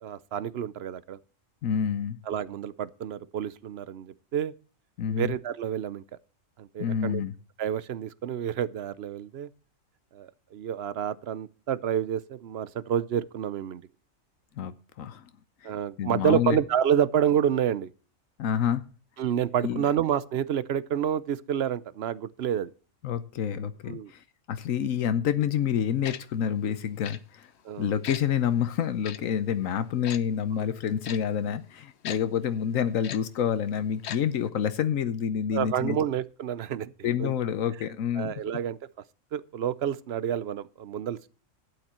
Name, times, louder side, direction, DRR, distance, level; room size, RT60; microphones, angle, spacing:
voice 1, 0.0-1.2 2.3-4.5 5.1-6.0 6.6-7.2 7.6-9.5 10.1-13.8 15.6-17.9 19.2-22.7 23.9-24.1 27.6-27.9 35.5-37.3 38.2-38.8 39.3-41.3, right 9 dB, 60° right, 0.8 m, -29 dB
voice 2, 1.6-2.2 5.0-5.3 6.8-7.3 14.6-15.3 15.6-15.7 16.0-16.6 18.4-18.8 19.6-19.8 23.0-27.5 27.8-36.0 37.0-38.3, left 8 dB, 85° left, 1.2 m, -28 dB
Tick-tock, 26.0-26.2 27.0-27.2 28.0-28.2 29.0-29.2 30.0-30.2 31.0-31.2 32.0-32.2 33.0-33.2 34.0-34.2 34.5-34.6, left 9 dB, 60° left, 0.9 m, -37 dB
12.0 x 8.9 x 4.3 m
omnidirectional pair, 1.4 m